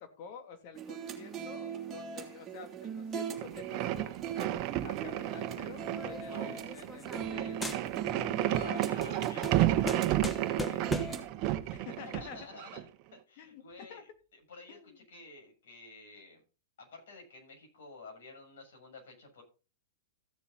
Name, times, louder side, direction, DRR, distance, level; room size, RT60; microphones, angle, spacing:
voice 1, 0.0-4.1 4.8-7.8 8.4-9.3 10.6-11.2 11.7-12.4 13.4-13.6 13.9-14.0 14.7-15.0, left 7 dB, 45° left, 7 dB, 2.8 m, -49 dB
sound 1, 0.7-11.3, right 7 dB, 20° right, 2.6 m, -41 dB
sound 2, 3.4-12.8, right 14 dB, 40° right, 1.2 m, -32 dB
sound 3, 6.0-7.4 7.6-8.3 8.6-11.3, left 2 dB, 10° left, 1.3 m, -40 dB
voice 2, 8.4-9.8 11.8-11.9 12.2-12.8 13.1-14.1 14.5-16.4 16.8-19.4, left 3 dB, 65° left, 2 dB, 7.1 m, -51 dB
15.5 x 7.0 x 4.0 m, 0.33 s
hypercardioid pair, 125°, 0 cm